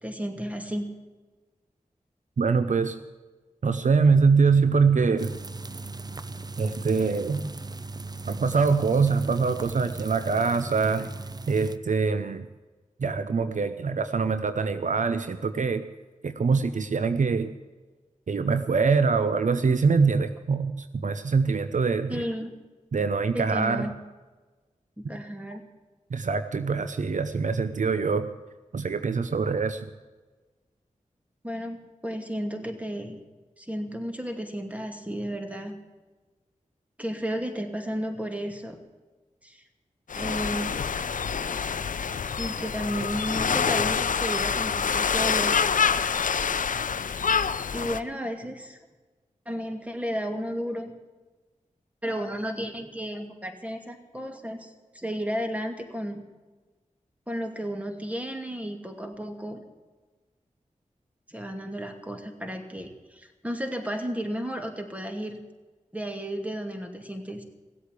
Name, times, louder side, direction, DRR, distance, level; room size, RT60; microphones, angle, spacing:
voice 1, 0.0-0.9 22.1-22.5 23.3-24.0 25.0-25.6 31.4-33.2 33.6-35.8 37.0-38.8 39.4-39.6 40.2-40.8 42.4-45.5 47.7-48.8 49.5-50.9 52.0-56.2 57.3-59.6 61.3-65.4 65.9-67.4, equal, 10° right, 4 dB, 2.5 m, -33 dB
voice 2, 2.4-3.0 3.6-5.4 6.6-7.4 8.3-11.1 11.5-12.5 13.0-15.8 16.2-17.5 18.3-22.2 22.9-23.9 26.1-28.3 28.7-29.9, right 5 dB, 65° right, 10 dB, 0.7 m, -24 dB
sound 1, 5.2-11.8, right 3 dB, 30° right, 0.7 m, -38 dB
sound 2, 40.1-48.0, left 6 dB, 75° left, 0.6 m, -26 dB
16.5 x 8.3 x 8.3 m, 1.3 s
cardioid pair, 45°, 14 cm